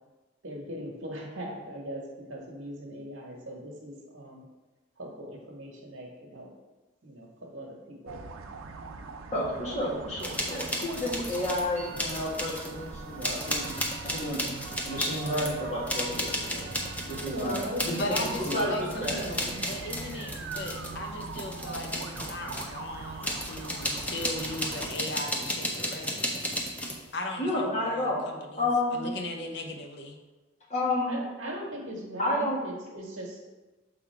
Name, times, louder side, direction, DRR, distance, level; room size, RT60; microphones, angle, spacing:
voice 1, 0.4-4.4 5.0-6.5 7.0-8.2 17.2-18.7 18.9-19.6 31.1-33.5, equal, 70° right, -4 dB, 1.4 m, -39 dB
sound 1, 8.1-24.9, right 4 dB, 85° right, 0.5 m, -41 dB
voice 2, 9.3-13.8 14.0-14.4 14.8-16.7 17.1-17.9 18.5-19.6 27.4-28.2 28.6-29.1 30.7-31.1 32.2-32.6, left 1 dB, 35° left, -5 dB, 1.5 m, -31 dB
sound 2, 10.2-11.6 12.0-12.8 13.2-22.7 23.2-27.0, equal, 5° left, 0.6 m, -34 dB
voice 3, 17.8-26.5 27.1-30.2, left 1 dB, 55° left, 4 dB, 0.7 m, -38 dB
6.1 x 3.8 x 4.5 m, 1.2 s
head